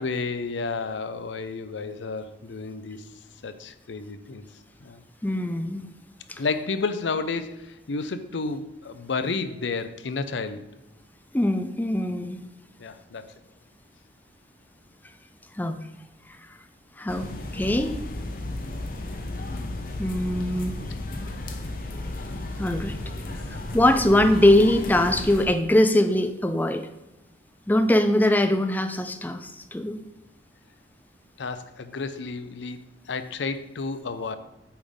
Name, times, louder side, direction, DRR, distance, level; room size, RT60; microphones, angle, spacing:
voice 1, 0.0-3.1 3.4-4.4 4.8-5.0 6.4-10.6 12.8-13.3 19.5-19.8 31.4-34.4, left 4 dB, 75° left, 11 dB, 0.6 m, -31 dB
voice 2, 5.2-5.8 6.3-6.4 11.3-12.4 15.6-15.8 17.0-18.0 20.0-20.7 22.6-23.0 23.5-26.9 27.7-30.0, left 1 dB, 10° left, 8 dB, 0.4 m, -22 dB
sound 1, 17.1-25.5, left 2 dB, 50° left, 0.8 m, -34 dB
8.7 x 3.6 x 5.4 m, 1.0 s
head